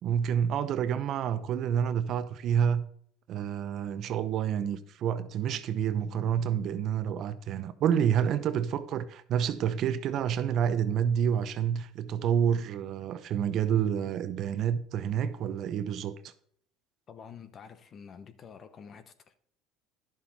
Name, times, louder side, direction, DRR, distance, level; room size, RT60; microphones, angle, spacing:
voice 1, 0.0-2.8 3.3-16.3, right 8 dB, 50° right, 0.8 m, -28 dB
voice 2, 17.1-19.3, left 7 dB, 40° left, 1.0 m, -48 dB
11.0 x 7.1 x 4.2 m
supercardioid pair, 115°, 0 cm